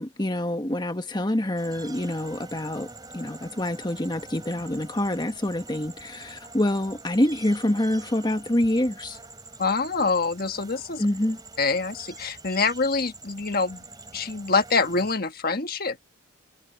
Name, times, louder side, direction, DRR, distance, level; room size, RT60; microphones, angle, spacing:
voice 1, 0.0-9.2 11.0-11.4, left 1 dB, 20° left, 1.3 m, -26 dB
sound 1, 1.6-15.2, right 3 dB, 20° right, 5.9 m, -45 dB
voice 2, 9.6-11.0 11.6-13.8 14.1-16.0, left 4 dB, 45° left, 1.4 m, -25 dB
head